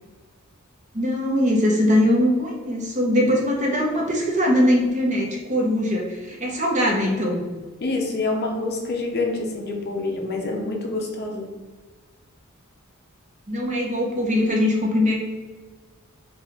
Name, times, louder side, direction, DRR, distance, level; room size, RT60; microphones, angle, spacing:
voice 1, 0.9-7.4 13.5-15.1, left 1 dB, 35° right, -1 dB, 0.8 m, -21 dB
voice 2, 7.8-11.5, left 3 dB, 50° left, 1 dB, 0.7 m, -26 dB
4.7 x 2.4 x 3.5 m, 1.4 s
head